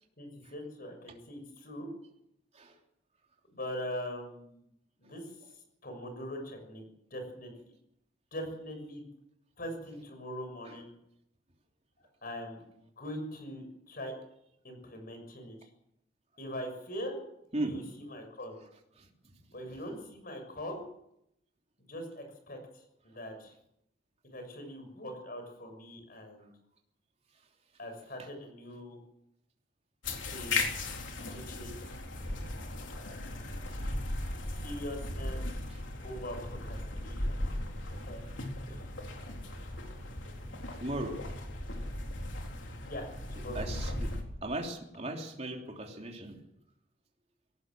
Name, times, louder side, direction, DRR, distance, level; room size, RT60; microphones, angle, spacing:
voice 1, 0.2-1.9 3.5-4.7 5.0-7.8 8.3-9.0 9.6-10.9 12.0-14.1 14.6-15.7 16.4-17.2 17.6-18.6 19.5-20.8 21.8-23.5 24.3-26.5 27.8-29.0 30.2-30.9 31.2-31.7 34.4-35.6 36.0-37.4 37.9-38.3 38.7-38.9 42.8-43.7, equal, 50° left, 5 dB, 6.4 m, -42 dB
sound 1, 30.0-44.2, left 2 dB, 80° left, 3.8 m, -37 dB
voice 2, 40.8-41.2 43.5-44.1 44.4-46.4, right 1 dB, 35° right, 1 dB, 3.2 m, -37 dB
19.0 x 18.0 x 7.7 m, 0.79 s
head